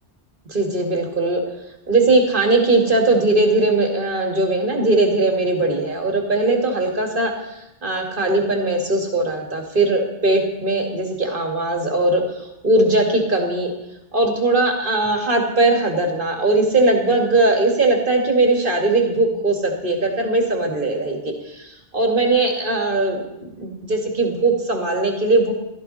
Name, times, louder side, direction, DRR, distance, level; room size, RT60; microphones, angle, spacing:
voice 1, 0.5-1.4 1.9-13.7 14.1-23.2 23.6-25.5, right 2 dB, 45° right, 2 dB, 2.5 m, -19 dB
16.5 x 14.0 x 4.3 m, 0.89 s
omnidirectional pair, 1.2 m